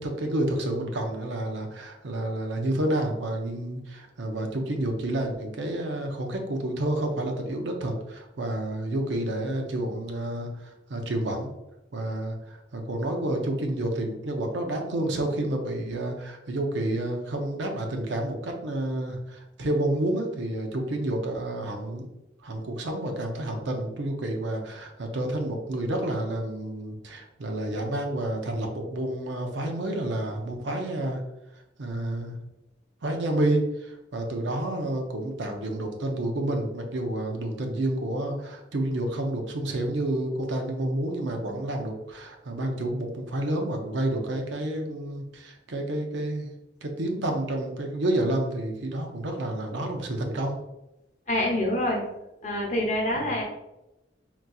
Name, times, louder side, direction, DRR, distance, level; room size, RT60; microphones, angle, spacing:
voice 1, 0.0-11.5 11.9-12.4 12.7-22.1 22.4-31.2 31.8-32.4 33.0-46.5 46.8-50.6 53.2-53.3, right 1 dB, 75° right, 3 dB, 0.6 m, -29 dB
voice 2, 51.3-52.0 52.4-53.4, left 1 dB, 40° left, -1 dB, 0.7 m, -26 dB
3.8 x 2.7 x 2.3 m, 0.92 s
head